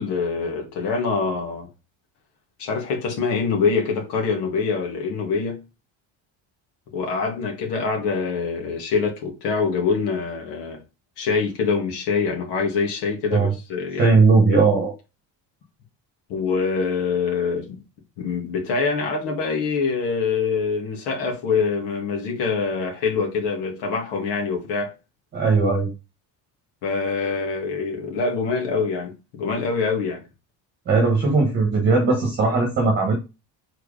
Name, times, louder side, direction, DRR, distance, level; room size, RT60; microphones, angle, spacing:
voice 1, 0.0-1.7 2.6-5.6 6.9-10.8 11.2-14.2 16.3-17.8 18.2-24.9 26.8-30.2, left 5 dB, 65° left, 2.3 m, -25 dB
voice 2, 14.0-14.9 25.3-25.9 30.9-33.1, right 4 dB, 25° right, 1.6 m, -18 dB
4.8 x 4.5 x 5.0 m
cardioid pair, 175°, 43 cm